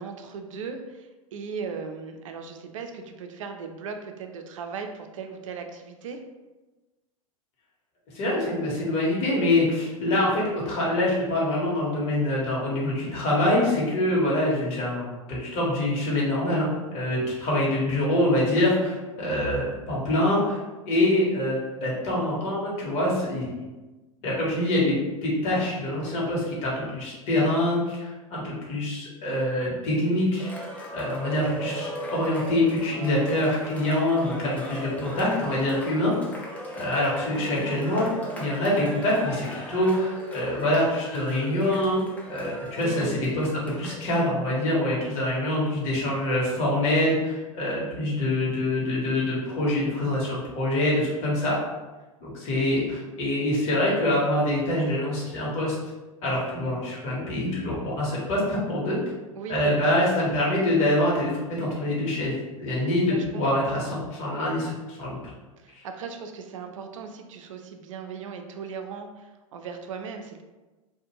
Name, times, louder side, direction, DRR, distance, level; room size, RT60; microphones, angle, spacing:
voice 1, 0.0-6.2 37.4-37.8 42.7-43.3 59.3-59.9 62.7-62.8 63.1-63.9 65.6-70.4, right 5 dB, 65° right, 5 dB, 0.4 m, -38 dB
voice 2, 8.1-20.6 20.9-23.6 24.2-30.5 30.9-36.1 36.7-51.6 52.2-55.7 56.2-59.0 59.5-62.3 62.6-65.2, left 1 dB, 40° left, -5 dB, 1.0 m, -25 dB
Cheering, 30.4-44.2, equal, 10° left, 0.5 m, -38 dB
2.4 x 2.1 x 2.9 m, 1.2 s
figure-of-eight pair, 90°, 18 cm